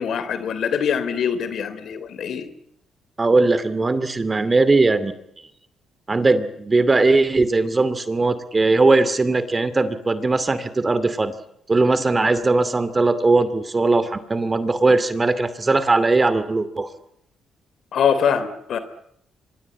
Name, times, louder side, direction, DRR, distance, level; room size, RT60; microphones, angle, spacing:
voice 1, 0.0-2.5 12.2-12.3 17.9-18.8, left 7 dB, 65° left, 13 dB, 3.2 m, -23 dB
voice 2, 3.2-5.1 6.1-11.4 11.7-16.9, right 3 dB, 25° right, 13 dB, 2.5 m, -19 dB
25.0 x 22.0 x 8.8 m, 0.74 s
cardioid pair, 90°, 0 cm